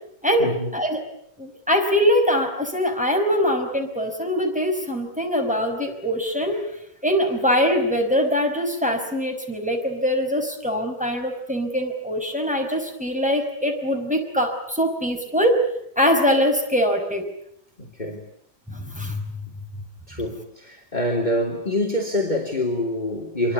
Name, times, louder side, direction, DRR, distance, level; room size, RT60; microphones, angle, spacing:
voice 1, 0.4-0.8 17.8-18.3 20.1-23.5, left 1 dB, 25° left, 3.4 m, -26 dB
voice 2, 1.4-6.6 7.0-15.6 16.0-17.3 18.7-19.2, equal, 5° right, 5.3 m, -22 dB
26.0 x 23.0 x 9.6 m
omnidirectional pair, 1.8 m